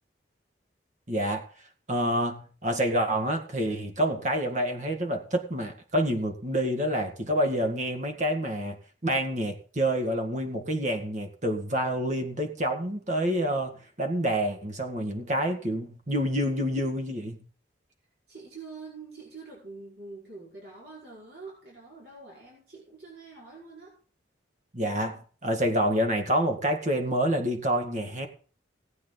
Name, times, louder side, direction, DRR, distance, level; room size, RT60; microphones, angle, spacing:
voice 1, 1.1-1.5 1.9-8.8 9.0-17.4 24.7-28.3, equal, 40° right, 4 dB, 1.8 m, -28 dB
voice 2, 18.3-24.0, right 4 dB, 55° right, -4 dB, 5.0 m, -45 dB
18.0 x 8.9 x 4.0 m, 0.41 s
head